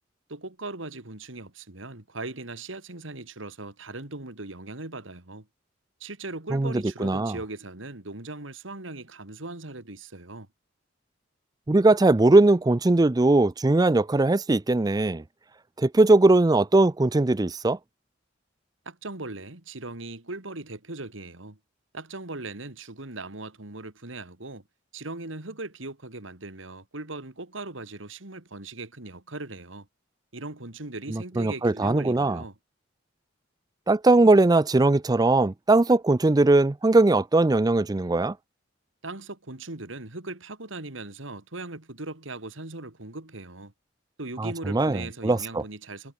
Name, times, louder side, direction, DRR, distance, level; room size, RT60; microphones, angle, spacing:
voice 1, 0.3-5.5 6.0-10.5 18.8-21.6 21.9-24.6 24.9-29.9 30.3-32.6 39.0-43.7 44.2-46.1, right 2 dB, 85° right, 2.8 m, -39 dB
voice 2, 7.0-7.4 11.7-15.2 15.8-17.8 31.1-32.4 33.9-38.3 44.4-45.6, right 2 dB, 20° right, 0.5 m, -20 dB
head